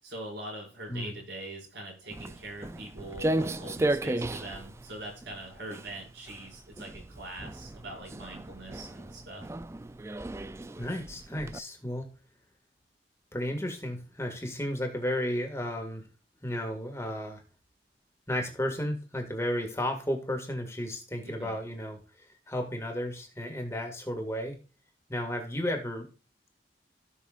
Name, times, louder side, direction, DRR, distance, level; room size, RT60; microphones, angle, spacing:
voice 1, 0.0-9.5 21.2-21.6, right 1 dB, 85° right, -1 dB, 5.7 m, -43 dB
Walk footsteps, 2.1-11.6, right 1 dB, 15° right, 0.3 m, -35 dB
voice 2, 10.8-12.1 13.3-16.0 16.4-17.4 18.3-22.0 22.5-24.6 25.1-26.1, left 1 dB, 15° left, 3 dB, 1.9 m, -33 dB
16.5 x 6.1 x 2.4 m, 0.36 s
head